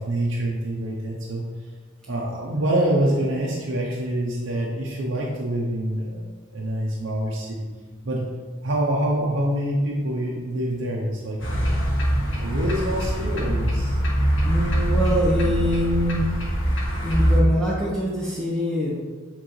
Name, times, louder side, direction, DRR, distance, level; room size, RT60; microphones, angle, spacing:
voice 1, 0.0-1.4 2.1-6.2 6.5-7.6 8.0-8.3 8.6-11.7 12.4-14.0, right 1 dB, 70° right, -3 dB, 0.8 m, -26 dB
sound 1, 11.4-17.4, equal, 75° left, 1.6 m, -23 dB
voice 2, 14.4-16.3 17.0-18.9, equal, 5° left, -8 dB, 0.9 m, -24 dB
8.6 x 3.7 x 3.2 m, 1.4 s
head